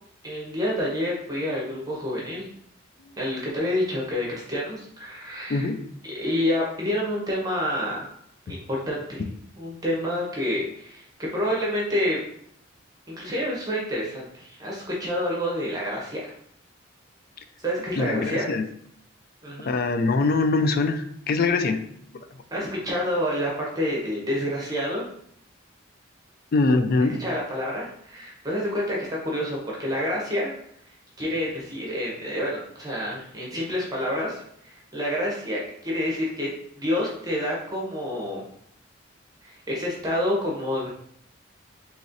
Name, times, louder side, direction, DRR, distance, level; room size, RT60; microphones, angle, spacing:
voice 1, 0.2-2.5 3.2-5.7 6.2-8.1 8.5-9.3 9.6-11.0 11.3-12.2 13.1-16.3 17.6-18.5 19.4-19.7 22.5-25.0 27.2-30.5 31.2-36.5 36.7-38.4 39.4-40.9, left 1 dB, 20° right, -3 dB, 0.8 m, -28 dB
voice 2, 5.5-5.8 18.0-18.7 19.7-21.8 26.5-27.2, left 3 dB, 50° left, 8 dB, 0.3 m, -23 dB
4.1 x 3.0 x 2.5 m, 0.67 s
head